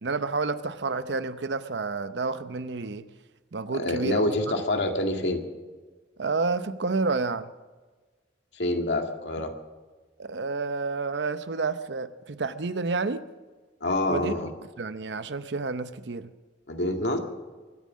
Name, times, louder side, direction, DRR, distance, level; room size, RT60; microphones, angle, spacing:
voice 1, 0.0-3.1 3.5-4.3 6.2-7.5 10.2-13.3 14.1-14.5 14.8-16.3, right 4 dB, 80° right, 12 dB, 0.7 m, -30 dB
voice 2, 3.7-5.4 8.6-9.5 13.8-14.5 16.7-17.2, left 1 dB, 80° left, 4 dB, 2.0 m, -26 dB
23.5 x 9.3 x 6.3 m, 1.3 s
head